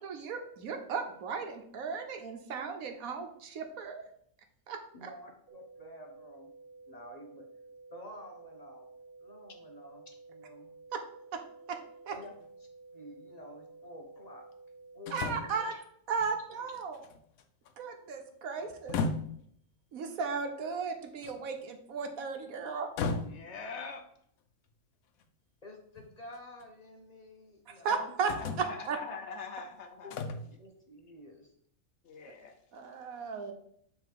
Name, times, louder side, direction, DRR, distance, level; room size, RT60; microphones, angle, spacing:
voice 1, 0.0-4.0 4.7-5.1 10.9-11.0 11.3-11.4 11.7-11.8 12.1-12.2 15.1-15.8 16.1-17.0 17.8-19.0 19.9-22.9 27.8-29.0 32.7-33.5, right 5 dB, 80° right, 5 dB, 1.3 m, -35 dB
voice 2, 4.9-6.5 6.9-7.5 7.9-8.9 9.2-10.7 12.1-12.3 12.9-14.4 14.9-15.7 16.5-16.7 18.6-18.7 25.6-28.0 30.0-31.5, left 1 dB, 35° left, 2 dB, 0.9 m, -50 dB
sound 1, 5.5-15.5, right 3 dB, 25° right, 0.3 m, -53 dB
sound 2, 12.1-12.2 15.1-15.6 16.2-16.3 16.7-17.7 18.7-19.5 21.2-21.6 23.0-23.6 25.2-25.3 26.0-26.7 27.9-28.0 28.3-28.9 30.1-30.5, left 4 dB, 80° left, 1.1 m, -35 dB
voice 3, 23.2-24.0 27.9-28.0 28.3-30.1 32.0-32.5, left 4 dB, 60° left, 5 dB, 0.9 m, -43 dB
6.9 x 3.4 x 4.6 m, 0.67 s
omnidirectional pair, 1.5 m